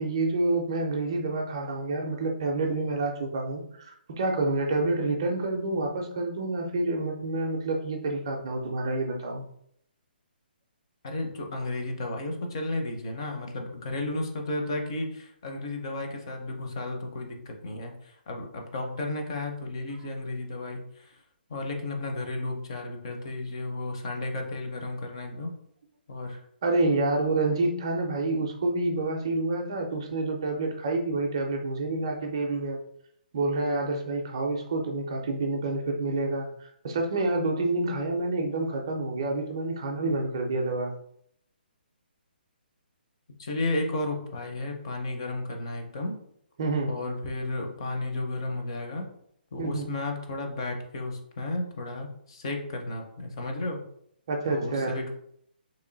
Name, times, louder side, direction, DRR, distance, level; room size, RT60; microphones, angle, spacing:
voice 1, 0.0-9.4 26.6-32.8 33.3-40.9 46.6-46.9 49.6-49.9 54.3-55.0, right 2 dB, 25° right, 2 dB, 0.4 m, -28 dB
voice 2, 11.0-21.2 21.5-25.5 26.1-26.4 43.4-46.2 46.9-49.0 49.5-53.8 54.5-55.1, left 2 dB, 30° left, 3 dB, 0.5 m, -33 dB
3.0 x 2.5 x 3.8 m, 0.69 s
hypercardioid pair, 180°, 6 cm